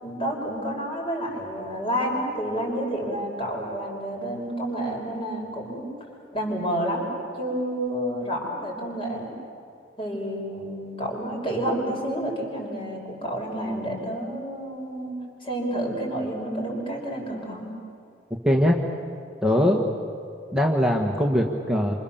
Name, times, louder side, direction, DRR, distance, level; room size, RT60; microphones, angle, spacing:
voice 1, 0.0-5.9 6.3-7.1 7.4-9.3 10.0-15.1 15.4-17.7, right 1 dB, 30° left, -1 dB, 6.0 m, -29 dB
voice 2, 18.4-18.8 19.4-19.8 20.5-22.0, equal, 5° right, -1 dB, 1.6 m, -21 dB
29.0 x 26.5 x 7.3 m, 2.5 s
head